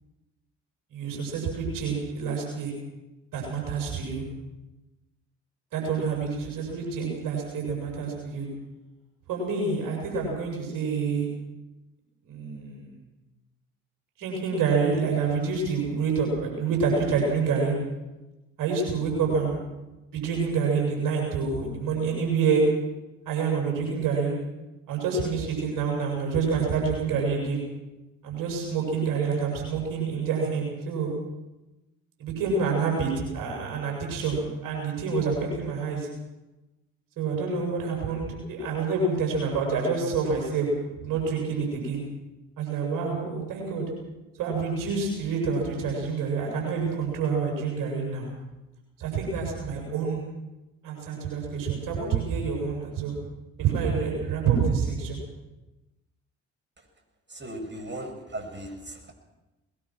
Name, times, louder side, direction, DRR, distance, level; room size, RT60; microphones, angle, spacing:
voice 1, 0.9-2.7 3.3-4.2 5.7-8.5 9.3-11.3 12.2-12.9 14.2-17.7 18.6-19.6 20.1-22.6 23.3-24.3 24.9-27.6 28.2-31.1 32.2-36.1 37.2-40.7 41.0-42.0 42.6-43.8 44.4-48.3 49.0-50.2 50.8-53.1 53.6-55.2, right 5 dB, 70° right, 0 dB, 7.6 m, -27 dB
voice 2, 57.3-59.1, right 1 dB, 30° right, 4 dB, 7.1 m, -37 dB
22.0 x 21.5 x 6.2 m, 1.0 s
hypercardioid pair, 45°, 35 cm